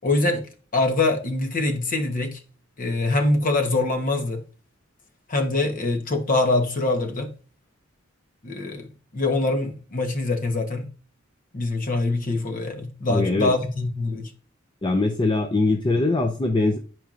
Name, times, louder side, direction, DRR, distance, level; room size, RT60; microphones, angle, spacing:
voice 1, 0.0-0.5 0.7-2.4 2.8-4.4 5.3-7.3 8.4-8.9 9.1-10.9 11.5-14.3, left 2 dB, 45° left, 1.0 m, -24 dB
voice 2, 13.1-13.5 14.8-16.8, left 2 dB, 25° left, 0.5 m, -22 dB
10.0 x 4.5 x 2.5 m
head